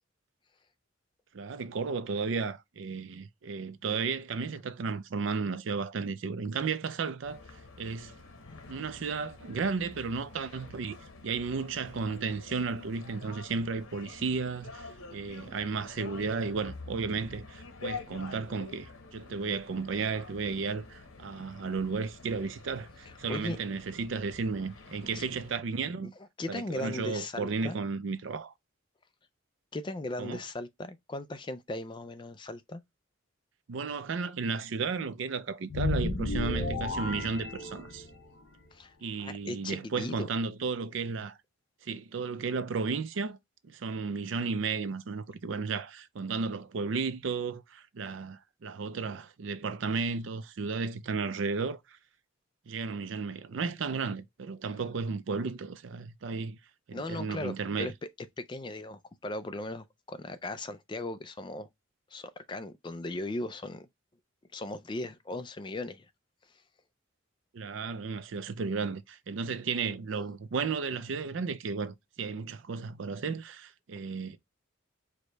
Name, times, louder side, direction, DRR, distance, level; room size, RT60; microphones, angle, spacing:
voice 1, 1.3-7.4 7.8-8.2 8.7-11.0 11.2-26.1 26.5-28.5 30.2-30.4 33.7-38.1 39.0-41.4 41.8-43.4 43.6-52.0 52.7-56.6 56.9-57.9 67.5-74.4, right 4 dB, 65° right, 0.4 m, -34 dB
sound 1, 7.2-25.6, left 4 dB, 90° left, 0.9 m, -48 dB
voice 2, 23.1-23.6 25.1-25.2 26.4-27.8 29.7-32.8 38.7-38.9 39.2-40.3 56.9-58.1 58.4-61.7 62.1-63.9 64.5-66.1, left 2 dB, 25° left, 0.3 m, -38 dB
sound 2, 35.7-38.3, left 2 dB, 55° left, 1.0 m, -32 dB
4.8 x 2.2 x 3.9 m
head